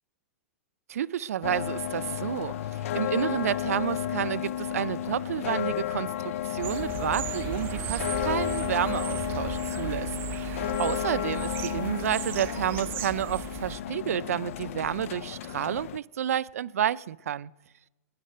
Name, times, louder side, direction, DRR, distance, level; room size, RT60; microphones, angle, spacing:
voice 1, 0.9-17.5, right 10 dB, 85° right, 0.4 m, -30 dB
sound 1, 1.4-16.0, left 11 dB, 65° left, 0.4 m, -32 dB
sound 2, 6.6-13.8, right 13 dB, 25° right, 0.4 m, -37 dB
19.5 x 10.0 x 6.7 m
hypercardioid pair, 140°, 8 cm